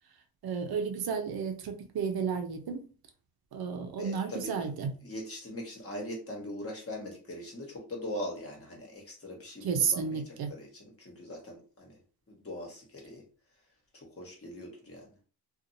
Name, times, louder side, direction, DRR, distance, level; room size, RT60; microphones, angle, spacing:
voice 1, 0.4-2.8 3.5-4.9 9.6-10.5, right 6 dB, 70° right, 5 dB, 0.6 m, -32 dB
voice 2, 3.9-4.5 5.0-12.0 12.3-13.2 13.9-15.1, left 1 dB, 35° left, 0 dB, 1.3 m, -41 dB
2.6 x 2.4 x 2.6 m, 0.38 s
cardioid pair, 80°, 38 cm